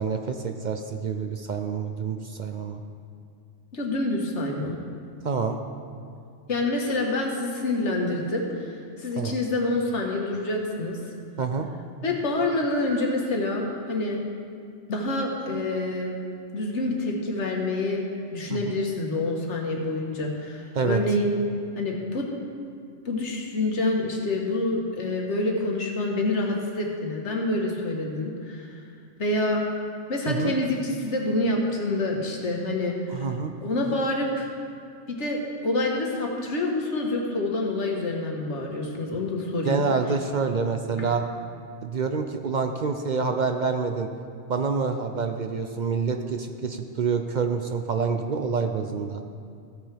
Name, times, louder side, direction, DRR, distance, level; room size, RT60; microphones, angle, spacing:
voice 1, 0.0-2.8 5.2-5.6 9.2-9.4 11.4-11.7 18.5-18.8 20.7-21.0 30.3-30.5 33.1-33.5 39.6-41.2 41.8-44.1 44.5-49.2, right 5 dB, 50° right, 6 dB, 0.6 m, -27 dB
voice 2, 3.7-4.8 6.5-11.0 12.0-14.2 14.9-16.1 16.5-18.0 18.3-21.3 21.8-22.3 23.1-28.7 29.2-29.6 30.1-33.0 33.6-34.5 35.1-39.8 41.0-41.1, left 2 dB, 85° left, 0 dB, 1.7 m, -27 dB
15.0 x 9.1 x 3.4 m, 2.3 s
omnidirectional pair, 1.2 m